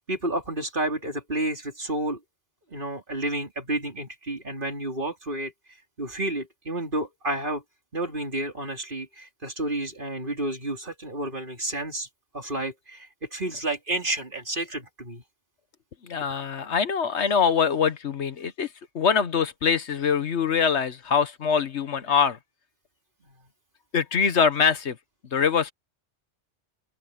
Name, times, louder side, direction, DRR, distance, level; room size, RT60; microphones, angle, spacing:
voice 1, 0.1-2.2 2.7-5.5 6.0-7.6 7.9-12.1 12.3-15.2 23.2-23.3, right 1 dB, 45° right, 4.0 m, -30 dB
voice 2, 16.0-18.7 18.9-22.4 23.9-25.0 25.3-25.7, left 6 dB, 70° left, 1.4 m, -23 dB
open air
omnidirectional pair, 1.2 m